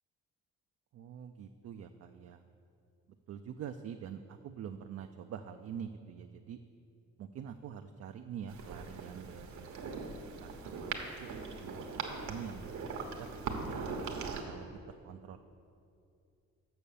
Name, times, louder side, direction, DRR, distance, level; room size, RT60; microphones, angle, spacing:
voice 1, 0.9-2.4 3.3-6.6 7.2-10.1 10.4-11.9 12.1-12.8 13.2-13.3 13.5-13.8 14.3-14.7 15.0-15.4, right 8 dB, 55° right, 6 dB, 0.4 m, -45 dB
sound 1, 8.5-14.4, right 4 dB, 70° right, 1.1 m, -40 dB
7.0 x 6.3 x 6.9 m, 2.5 s
cardioid pair, 90°, 30 cm